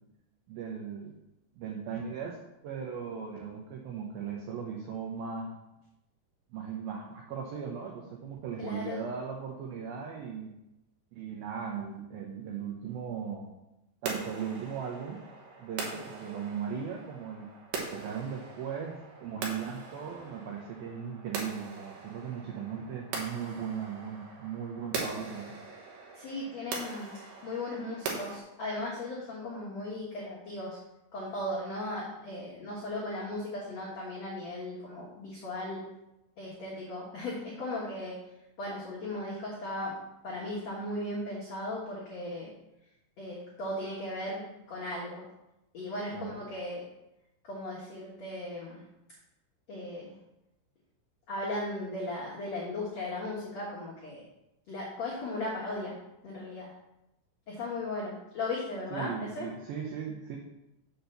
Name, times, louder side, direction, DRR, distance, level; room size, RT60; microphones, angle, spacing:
voice 1, 0.5-1.2 1.5-2.4 2.6-5.6 6.5-10.5 11.1-13.5 14.0-15.2 15.6-25.6 46.1-46.4 58.9-60.4, right 7 dB, 90° right, 0 dB, 2.1 m, -38 dB
voice 2, 8.6-9.0 26.1-30.8 31.1-35.8 36.4-38.2 38.6-39.9 40.2-42.5 43.2-45.2 45.7-46.9 47.4-48.8 49.7-50.1 51.3-54.3 54.7-56.0 56.2-56.7 57.5-59.5, left 1 dB, 80° left, -6 dB, 1.4 m, -37 dB
sound 1, 14.1-28.4, right 4 dB, 70° right, 3.2 m, -41 dB
7.4 x 4.4 x 6.6 m, 0.90 s
omnidirectional pair, 5.5 m